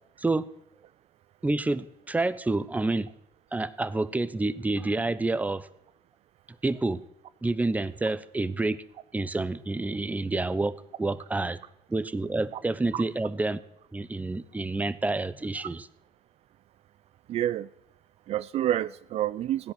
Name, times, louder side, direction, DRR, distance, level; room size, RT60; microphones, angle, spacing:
voice 1, 1.4-3.1 3.5-5.7 6.6-7.0 7.4-8.8 9.1-11.6 11.9-13.6 13.9-15.8, right 2 dB, 10° right, 14 dB, 0.8 m, -28 dB
voice 2, 17.3-17.7 18.3-19.7, right 12 dB, 55° right, 16 dB, 0.4 m, -28 dB
16.0 x 10.5 x 6.0 m, 0.83 s
cardioid pair, 90°, 13 cm